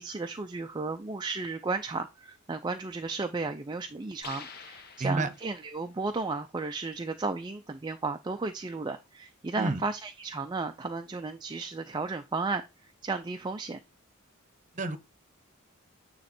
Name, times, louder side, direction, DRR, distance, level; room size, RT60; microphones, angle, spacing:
voice 1, 0.0-13.8, right 3 dB, 20° right, 0.4 m, -34 dB
sound 1, 4.2-5.8, left 5 dB, 45° left, 1.2 m, -46 dB
voice 2, 5.0-5.3 9.6-9.8 14.7-15.0, right 2 dB, 35° right, 1.0 m, -29 dB
9.3 x 3.1 x 4.3 m
head